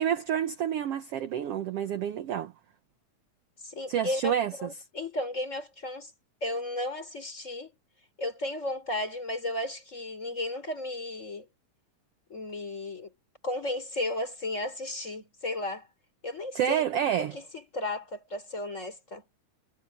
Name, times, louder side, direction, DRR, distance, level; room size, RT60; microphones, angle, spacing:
voice 1, 0.0-2.5 3.9-4.7 16.5-17.4, right 9 dB, 65° right, 1.6 m, -28 dB
voice 2, 3.6-4.3 4.6-6.1 6.4-7.7 8.2-11.5 12.3-13.1 13.4-15.9 16.2-16.8 17.2-19.2, left 1 dB, 20° left, 4.5 m, -34 dB
omnidirectional pair, 3.6 m